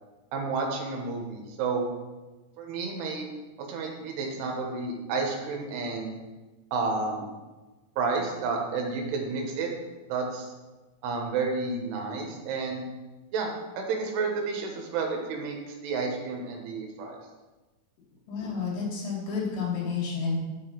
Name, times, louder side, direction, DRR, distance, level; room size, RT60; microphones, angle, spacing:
voice 1, 0.3-1.9 2.6-3.3 3.6-6.1 6.7-7.3 8.0-9.7 10.1-10.5 11.0-12.8 13.3-17.2, right 4 dB, 75° right, 2 dB, 3.0 m, -31 dB
voice 2, 18.3-20.4, left 5 dB, 70° left, -5 dB, 4.4 m, -30 dB
8.0 x 6.5 x 3.9 m, 1.2 s
omnidirectional pair, 5.1 m